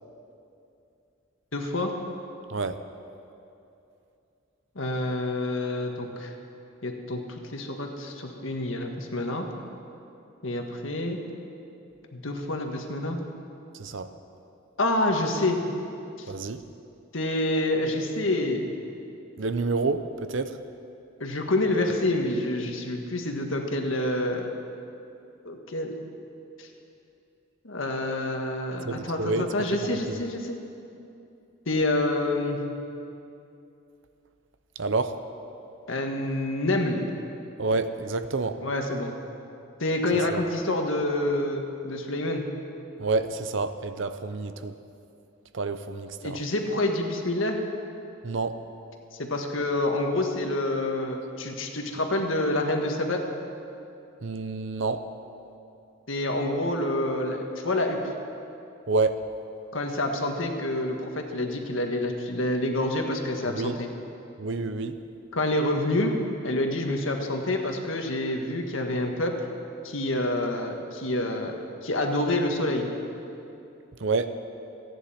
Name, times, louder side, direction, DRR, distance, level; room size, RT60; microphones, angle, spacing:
voice 1, 1.5-1.9 4.7-6.3 6.8-9.4 10.4-11.2 12.1-13.2 14.8-15.6 16.2-16.3 17.1-18.7 21.2-24.5 25.4-26.0 26.6-26.7 27.6-30.6 31.6-32.6 35.9-37.0 38.6-39.1 39.8-42.4 46.2-47.6 49.1-53.2 56.1-58.1 59.7-63.9 65.3-66.1 66.4-69.3 69.8-71.5 71.8-72.9, left 1 dB, 75° left, 3 dB, 1.7 m, -27 dB
voice 2, 13.8-14.1 16.3-16.6 19.4-20.6 28.8-30.2 34.8-35.2 37.6-38.6 40.3-40.4 43.0-44.7 45.5-46.4 48.2-48.6 54.2-55.0 58.9-59.2 63.5-63.8 64.4-65.0 74.0-74.3, right 3 dB, 65° right, 10 dB, 0.7 m, -28 dB
29.0 x 10.0 x 4.4 m, 2.7 s
head